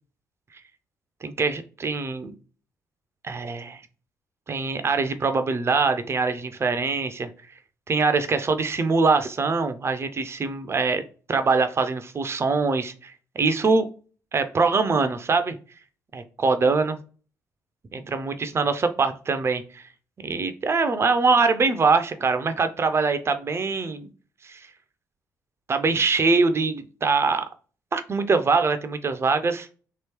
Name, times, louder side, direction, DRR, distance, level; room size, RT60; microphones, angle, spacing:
voice 1, 1.2-2.3 3.2-3.8 4.5-7.3 7.9-11.0 11.3-13.8 14.3-15.6 16.1-17.0 17.9-19.8 20.2-24.1 24.4-24.6 25.7-27.4 27.9-29.7, right 4 dB, 30° right, 9 dB, 0.5 m, -23 dB
3.0 x 2.9 x 2.9 m, 0.38 s
figure-of-eight pair, 40°, 9 cm